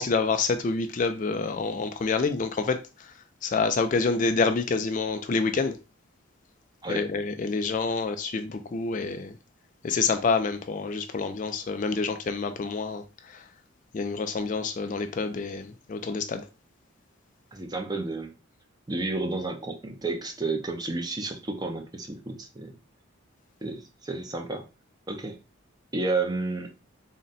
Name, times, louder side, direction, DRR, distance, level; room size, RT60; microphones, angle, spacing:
voice 1, 0.0-3.1 3.4-5.8 6.9-9.4 9.8-13.4 13.9-16.5, left 4 dB, 35° left, 0.3 m, -27 dB
voice 2, 17.5-18.3 18.9-22.8 23.6-24.7 25.1-25.4 25.9-26.7, right 3 dB, 20° right, 0.5 m, -31 dB
3.9 x 2.1 x 3.9 m
head